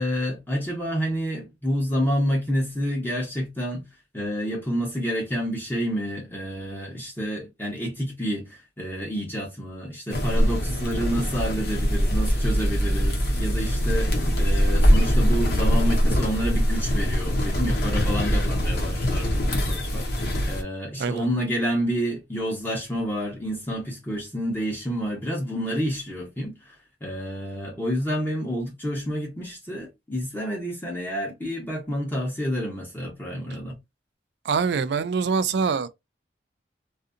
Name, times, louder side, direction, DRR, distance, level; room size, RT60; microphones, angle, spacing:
voice 1, 0.0-3.9 4.1-26.7 27.0-33.8, equal, 10° left, 0.8 m, -29 dB
sound 1, 10.1-20.6, equal, 65° left, 0.8 m, -22 dB
voice 2, 34.5-35.9, right 5 dB, 70° right, 0.3 m, -24 dB
2.6 x 2.5 x 2.4 m
head